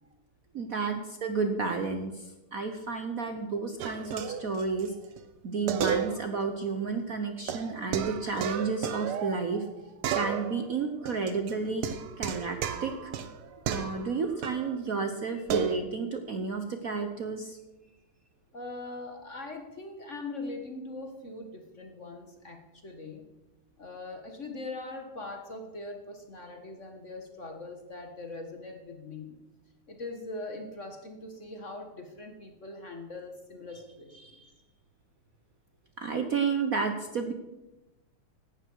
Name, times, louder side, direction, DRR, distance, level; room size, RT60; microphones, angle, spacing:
voice 1, 0.5-4.9 5.4-9.7 10.1-11.9 12.2-13.1 13.6-17.6 34.2-34.5 36.0-37.3, right 4 dB, 50° right, 6 dB, 1.1 m, -31 dB
sound 1, 3.8-4.9 5.2-5.3 5.7-6.5 6.7-6.8 7.5-9.7 10.0-10.7 11.0-14.7 15.5-15.8, right 8 dB, 75° right, 1.8 m, -33 dB
voice 2, 18.5-23.3 23.8-29.4 29.9-34.2, left 2 dB, 35° left, 4 dB, 1.6 m, -41 dB
17.0 x 12.5 x 4.7 m, 1.0 s
omnidirectional pair, 2.4 m